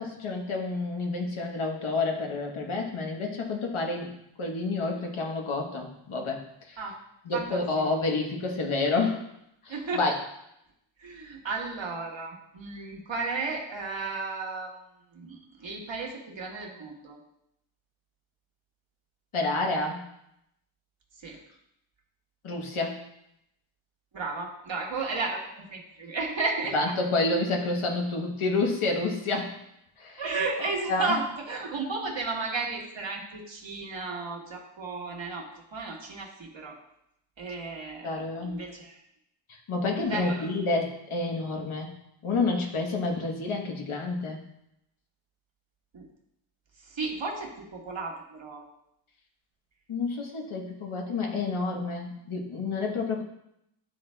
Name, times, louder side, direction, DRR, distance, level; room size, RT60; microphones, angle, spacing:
voice 1, 0.0-4.1 4.4-6.4 6.7-6.8 7.2-9.2 9.6-10.1 19.3-20.0 22.4-23.0 26.7-29.5 30.0-30.2 30.9-31.2 38.0-38.6 39.7-41.9 42.2-44.4 49.9-53.2, left 3 dB, 85° left, 1 dB, 1.1 m, -29 dB
voice 2, 7.3-7.9 9.7-10.1 11.0-14.7 15.1-17.2 21.2-21.4 24.1-25.4 25.7-26.9 30.2-36.8 37.4-39.0 40.0-40.5 45.9-46.1 46.9-48.6, right 3 dB, 65° right, -1 dB, 1.4 m, -33 dB
11.5 x 3.9 x 2.2 m, 0.80 s
wide cardioid pair, 90°, 48 cm